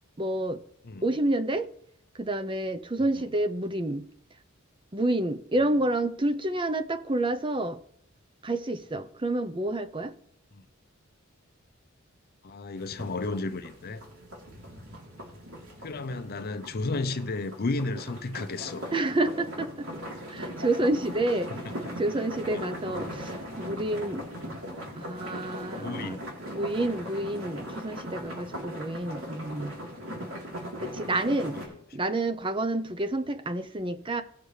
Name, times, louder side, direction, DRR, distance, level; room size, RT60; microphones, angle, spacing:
voice 1, 0.2-0.6 1.0-1.7 2.1-4.0 4.9-7.8 8.4-10.1 18.9-19.9 20.3-21.5 22.0-24.6 25.0-26.2 26.5-29.7 30.8-31.6 31.9-34.2, right 2 dB, 25° right, 0.7 m, -29 dB
voice 2, 12.4-14.0 15.8-18.9 20.8-21.0 21.5-22.0 22.5-22.8 24.4-24.5 25.8-26.3 26.8-27.0 28.3-28.6 30.2-30.3 31.5-31.6, left 3 dB, 50° left, 0.6 m, -34 dB
sound 1, 12.7-31.7, equal, 85° right, 3.4 m, -39 dB
19.0 x 6.6 x 3.3 m
head